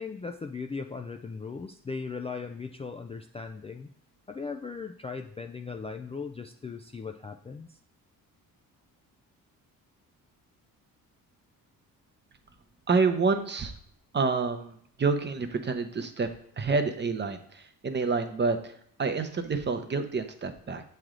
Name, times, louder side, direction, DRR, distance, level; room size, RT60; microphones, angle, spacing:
voice 1, 0.0-3.9 4.3-7.8, left 5 dB, 20° left, 4 dB, 0.3 m, -38 dB
voice 2, 12.9-13.7 14.1-16.3 16.6-20.8, right 4 dB, 30° right, 8 dB, 0.7 m, -28 dB
7.7 x 3.3 x 3.7 m, 0.64 s
cardioid pair, 80°, 35 cm